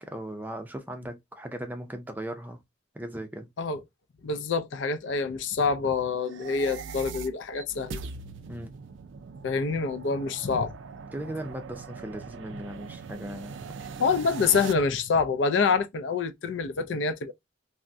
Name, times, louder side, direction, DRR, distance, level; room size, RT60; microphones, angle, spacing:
voice 1, 0.1-2.6 2.9-3.5 8.5-8.7 11.1-13.9, right 1 dB, 10° right, 0.5 m, -38 dB
voice 2, 4.2-8.0 9.4-10.7 14.0-17.3, left 5 dB, 75° left, 0.4 m, -26 dB
sound 1, 6.2-14.7, right 5 dB, 75° right, 0.4 m, -41 dB
3.4 x 2.1 x 2.6 m
head